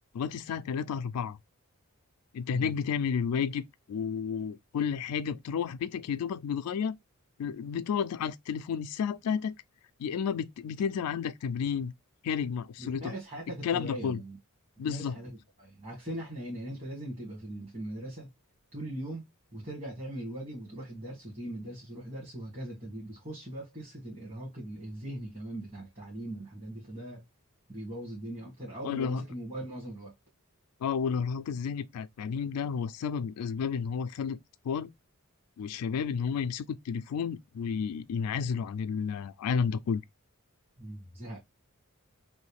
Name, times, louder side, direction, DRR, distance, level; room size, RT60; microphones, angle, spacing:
voice 1, 0.1-1.4 2.3-3.6 3.9-6.9 7.4-9.5 10.0-11.9 12.2-13.1 13.6-14.2 14.8-15.1 28.8-29.2 30.8-34.4 34.6-34.9 35.6-40.0, left 6 dB, 80° left, 0.3 m, -31 dB
voice 2, 12.8-14.4 14.9-18.3 18.7-19.2 19.5-27.2 27.7-30.1 40.8-41.4, right 1 dB, 30° right, 1.4 m, -40 dB
3.1 x 2.7 x 3.2 m
head